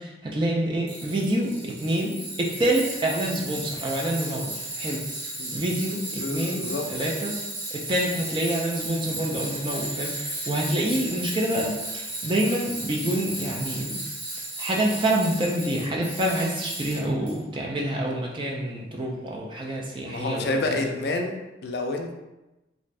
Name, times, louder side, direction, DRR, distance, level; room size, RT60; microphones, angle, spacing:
voice 1, 0.0-5.0 5.5-7.4 7.7-14.0 14.6-20.8, right 1 dB, 25° right, -1 dB, 0.4 m, -27 dB
Tools, 0.9-17.3, right 2 dB, 90° right, 1.1 m, -35 dB
voice 2, 6.2-6.8 20.0-22.1, left 2 dB, 60° left, 3 dB, 0.4 m, -29 dB
2.6 x 2.5 x 3.2 m, 1.0 s
head